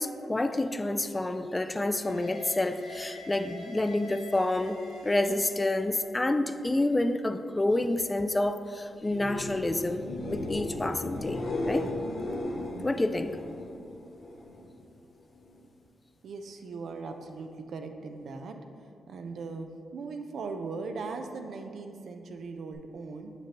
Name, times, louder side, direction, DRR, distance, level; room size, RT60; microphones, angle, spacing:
voice 1, 0.0-11.9 12.8-13.4, left 2 dB, 25° left, 10 dB, 0.4 m, -29 dB
sound 1, 2.0-7.4, left 3 dB, 90° left, 1.1 m, -48 dB
sound 2, 9.0-14.8 15.1-15.7 22.7-22.8, left 2 dB, 70° left, 0.8 m, -36 dB
voice 2, 16.2-18.6 19.1-23.3, right 4 dB, 70° right, 5 dB, 0.5 m, -39 dB
6.6 x 6.0 x 2.9 m, 2.5 s
supercardioid pair, 50°, 0 cm